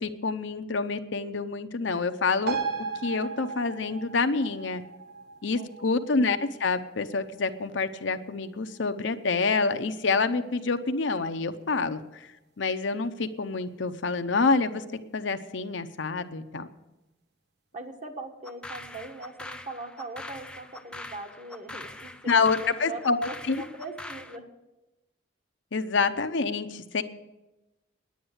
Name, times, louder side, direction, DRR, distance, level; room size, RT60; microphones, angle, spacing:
voice 1, 0.0-2.6 3.0-4.8 5.4-12.3 12.6-14.8 15.1-16.7 22.3-23.6 25.7-27.0, left 4 dB, 75° left, 9 dB, 0.7 m, -27 dB
sound 1, 2.5-9.4 9.8-9.9, right 5 dB, 60° right, 1.1 m, -38 dB
voice 2, 5.5-6.0 17.7-24.5, right 2 dB, 40° right, 4 dB, 1.4 m, -41 dB
sound 2, 18.4-24.4, left 2 dB, 5° left, 0.5 m, -43 dB
10.0 x 9.4 x 8.0 m, 1.0 s
head